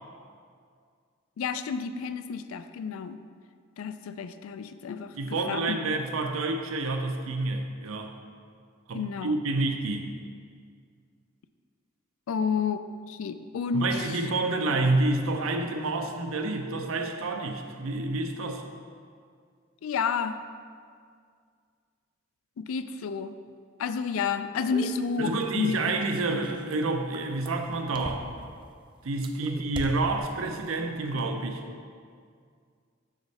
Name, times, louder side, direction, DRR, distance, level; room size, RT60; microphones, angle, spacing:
voice 1, 1.4-3.2 3.8-5.8 8.9-9.4 12.3-14.1 19.8-20.4 22.6-23.3 23.8-25.8 30.8-30.9, left 5 dB, 90° left, 11 dB, 0.3 m, -30 dB
voice 2, 5.1-8.2 8.9-10.1 13.7-18.6 25.2-28.3 29.0-31.6, right 2 dB, 90° right, 5 dB, 0.6 m, -29 dB
sound 1, 24.7-28.6 29.1-30.7 31.0-31.3, right 2 dB, 25° right, 0.4 m, -39 dB
6.4 x 5.0 x 4.0 m, 2.1 s
head